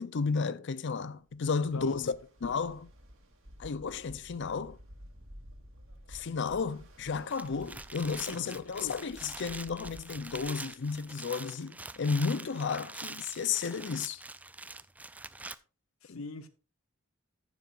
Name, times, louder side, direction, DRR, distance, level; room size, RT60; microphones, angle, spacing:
voice 1, 0.0-2.1 2.4-2.9 3.6-4.8 6.1-14.2 16.1-16.2, left 5 dB, 60° left, 0.5 m, -33 dB
Ocean, 1.3-11.2, equal, 65° right, 2.5 m, -53 dB
voice 2, 1.7-2.1 8.2-8.7 16.0-16.5, left 3 dB, 80° left, 1.0 m, -43 dB
Leaves Crunching, 7.2-15.5, right 3 dB, 5° right, 0.3 m, -45 dB
14.5 x 7.2 x 2.5 m
head